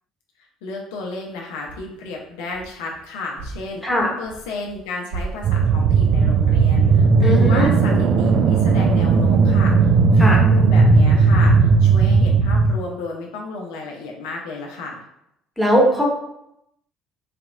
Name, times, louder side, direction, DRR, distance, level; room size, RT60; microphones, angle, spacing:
voice 1, 0.6-3.8 4.2-15.0, left 3 dB, 65° left, -1 dB, 0.5 m, -32 dB
sound 1, 0.9-1.3 1.6-3.0 3.3-4.8 5.1-6.0, right 3 dB, 65° right, 1.2 m, -37 dB
sound 2, 5.4-12.8, right 4 dB, 50° right, 0.3 m, -15 dB
voice 2, 7.2-7.7 10.2-10.4 15.6-16.0, equal, 5° left, -2 dB, 1.1 m, -18 dB
4.0 x 2.8 x 2.3 m, 0.81 s
figure-of-eight pair, 55°, 0 cm